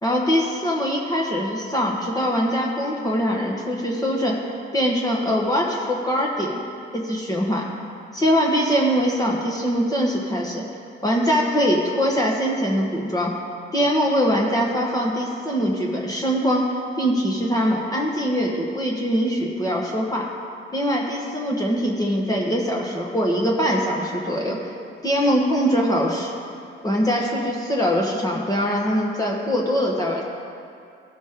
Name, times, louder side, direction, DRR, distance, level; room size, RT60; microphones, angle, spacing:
voice 1, 0.0-4.4 4.7-6.6 6.9-7.6 8.1-10.6 11.0-13.3 13.7-20.3 20.7-24.7 25.0-26.3 26.8-30.2, equal, 20° left, -2 dB, 1.2 m, -22 dB
16.0 x 6.1 x 3.6 m, 2.4 s
cardioid pair, 90°, 20 cm